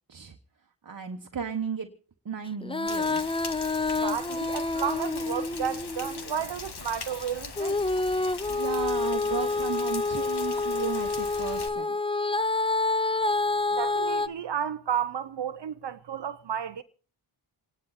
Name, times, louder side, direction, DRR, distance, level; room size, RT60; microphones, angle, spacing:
voice 1, 0.8-1.9 2.2-3.2 8.5-12.0, right 6 dB, 40° right, 1.3 m, -34 dB
Female singing, 2.6-6.4 7.6-14.3, left 3 dB, 10° left, 0.6 m, -28 dB
Rain, 2.9-11.7, left 5 dB, 50° left, 1.8 m, -41 dB
voice 2, 4.0-7.8 13.7-16.8, right 8 dB, 55° right, 0.8 m, -32 dB
27.5 x 10.5 x 4.1 m
cardioid pair, 60°, 50 cm